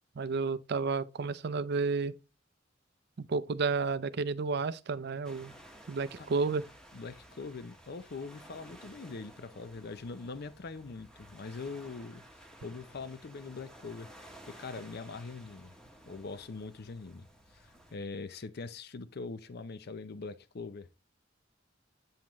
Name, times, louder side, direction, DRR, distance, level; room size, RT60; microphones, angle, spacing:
voice 1, 0.2-2.1 3.2-5.5 5.9-6.7, right 4 dB, 60° right, 0.5 m, -31 dB
sound 1, 5.2-18.0, equal, 5° left, 1.2 m, -54 dB
voice 2, 6.9-15.7 16.1-17.3 17.5-20.9, left 4 dB, 55° left, 0.5 m, -43 dB
8.7 x 5.7 x 3.0 m
head